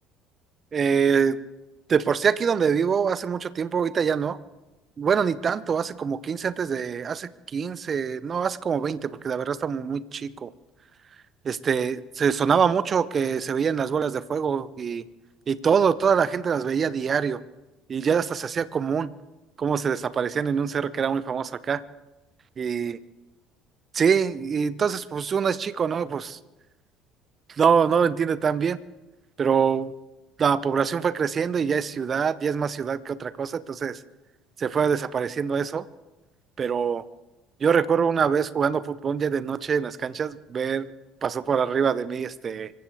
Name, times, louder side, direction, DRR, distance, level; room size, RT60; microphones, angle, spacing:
voice 1, 0.7-1.4 1.9-4.4 5.0-10.5 11.4-15.1 15.5-17.4 17.9-19.1 19.6-21.8 22.6-23.0 23.9-26.4 27.6-28.8 29.4-29.9 30.4-34.0 34.6-35.8 36.6-37.0 37.6-40.9 41.2-42.7, right 6 dB, 40° right, 17 dB, 0.7 m, -24 dB
25.5 x 15.5 x 3.6 m, 1.0 s
hypercardioid pair, 60°, 0 cm